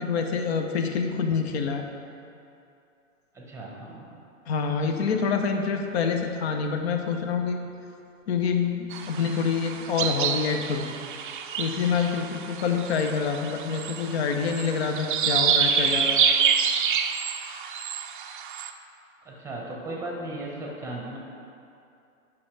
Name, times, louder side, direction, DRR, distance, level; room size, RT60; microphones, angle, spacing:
voice 1, 0.0-1.8 4.5-7.6 8.3-10.9 11.6-16.2, left 5 dB, 50° left, 4 dB, 0.8 m, -26 dB
voice 2, 3.3-4.1 19.2-21.2, right 1 dB, 5° right, -2 dB, 1.0 m, -36 dB
sound 1, 8.9-18.7, right 7 dB, 40° right, 0.4 m, -27 dB
8.3 x 5.8 x 3.3 m, 2.6 s
figure-of-eight pair, 115°, 41 cm